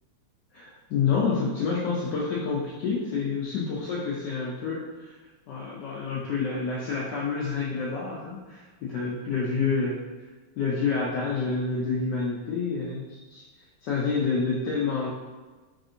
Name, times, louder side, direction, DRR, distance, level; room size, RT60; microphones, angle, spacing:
voice 1, 0.5-5.1 5.5-10.0 10.6-13.4 13.8-15.1, left 5 dB, 75° left, -5 dB, 1.0 m, -28 dB
3.4 x 2.6 x 2.5 m, 1.3 s
omnidirectional pair, 2.3 m